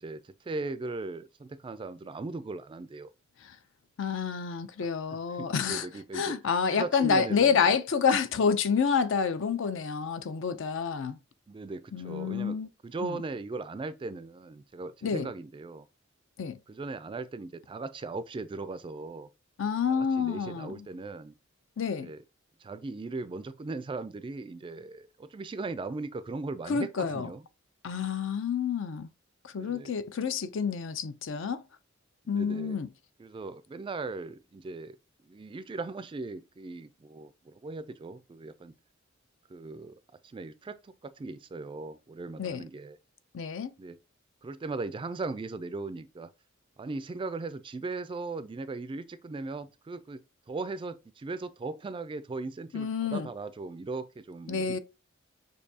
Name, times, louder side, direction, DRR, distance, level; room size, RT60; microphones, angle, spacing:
voice 1, 0.0-3.1 4.8-6.4 6.7-7.8 11.5-12.6 12.8-15.9 16.7-19.3 19.9-21.3 22.0-22.2 22.6-27.4 29.6-29.9 32.3-32.8 33.2-35.0 35.2-38.7 39.5-43.0 43.8-44.0 44.4-46.3 46.8-54.8, right 3 dB, 25° right, 0.3 m, -38 dB
voice 2, 4.0-5.9 6.1-11.2 11.9-12.7 13.0-13.2 15.0-15.3 16.4-16.6 19.6-20.8 21.8-22.1 26.7-27.3 27.8-29.1 29.4-31.6 32.3-32.9 42.4-42.6 43.3-43.7 52.7-53.3 54.5-54.8, left 6 dB, 65° left, 0.5 m, -28 dB
6.5 x 2.7 x 2.7 m
head